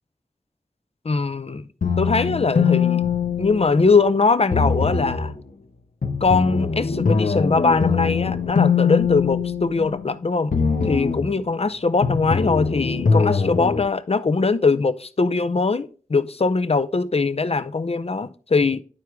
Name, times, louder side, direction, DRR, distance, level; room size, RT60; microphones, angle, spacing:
voice 1, 1.0-1.7 2.0-3.0 3.4-5.3 6.2-10.5 10.8-18.8, left 4 dB, 50° left, 0.6 m, -21 dB
sound 1, 1.8-4.1 4.5-5.3 6.0-10.1 10.5-11.3 12.0-13.8, left 5 dB, 85° left, 0.9 m, -22 dB
11.0 x 4.6 x 3.6 m
wide cardioid pair, 75°, 14 cm